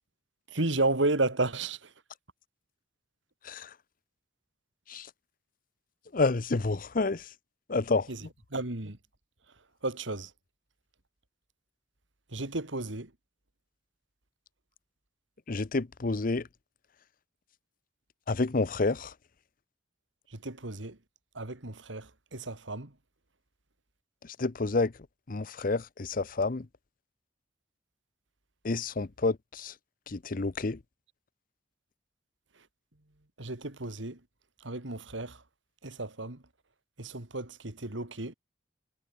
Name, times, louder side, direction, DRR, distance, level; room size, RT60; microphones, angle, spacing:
voice 1, 0.5-1.8 8.1-9.0 9.8-10.3 12.3-13.1 20.4-20.9 21.4-22.0 22.3-22.9 33.4-34.2 34.6-35.3 35.8-36.4 37.0-38.3, right 2 dB, 80° right, 2.6 m, -32 dB
voice 2, 6.1-7.2 7.7-8.1 15.5-16.4 18.3-19.1 24.4-24.9 25.3-26.6 28.6-29.7 30.1-30.8, left 3 dB, 45° left, 0.7 m, -29 dB
head